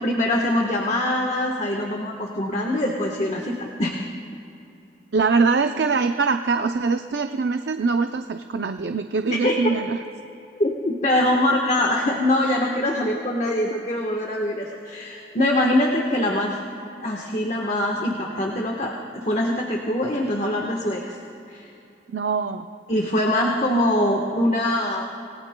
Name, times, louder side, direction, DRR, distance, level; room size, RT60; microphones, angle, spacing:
voice 1, 0.0-4.0 9.3-9.7 10.6-16.6 17.0-21.2 21.5-21.7 22.9-25.0, left 1 dB, 40° left, 0 dB, 1.2 m, -23 dB
voice 2, 5.1-10.0 22.1-22.7, right 4 dB, 70° right, 7 dB, 0.5 m, -23 dB
28.0 x 18.5 x 2.2 m, 2.7 s
head